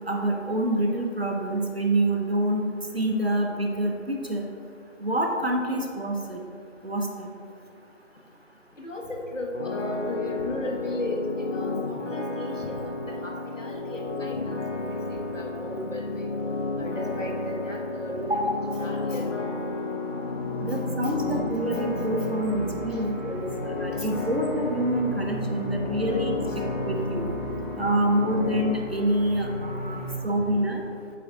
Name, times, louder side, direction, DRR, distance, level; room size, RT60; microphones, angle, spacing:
voice 1, 0.0-2.7 2.9-4.4 5.0-6.4 6.8-7.3 18.3-18.6 20.6-27.3 27.8-30.8, right 1 dB, 55° right, 2 dB, 0.7 m, -27 dB
voice 2, 8.8-12.9 13.2-16.2 16.8-19.3 22.9-23.0 23.9-24.1, left 1 dB, 85° left, -1 dB, 1.5 m, -35 dB
sound 1, 9.5-28.7, left 3 dB, 70° left, 0.7 m, -32 dB
sound 2, 18.5-30.1, equal, 45° left, 1.3 m, -36 dB
8.3 x 4.2 x 3.7 m, 2.4 s
figure-of-eight pair, 170°, 37 cm